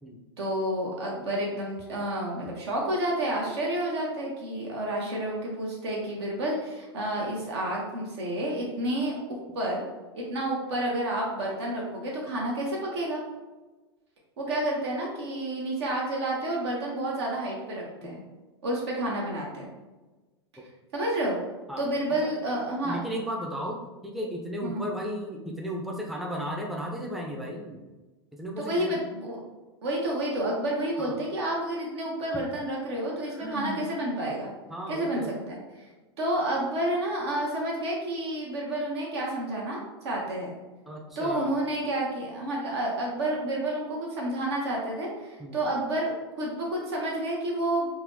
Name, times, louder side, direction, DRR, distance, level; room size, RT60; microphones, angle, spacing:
voice 1, 0.4-9.8 10.1-13.2 14.4-18.2 18.6-19.7 20.9-21.4 21.8-23.0 24.6-24.8 28.6-29.4 29.8-34.5 34.9-35.8 36.2-39.8 40.0-40.6 41.2-47.9, right 1 dB, 70° right, -3 dB, 0.8 m, -30 dB
voice 2, 22.8-23.8 24.0-27.8 28.3-28.9 31.0-31.2 34.7-35.3 40.9-41.6 45.4-45.6, equal, ahead, -1 dB, 0.4 m, -34 dB
Sigh, 33.2-33.9, right 2 dB, 30° right, 1.0 m, -37 dB
3.9 x 2.1 x 2.7 m, 1.2 s
hypercardioid pair, 100°, 14 cm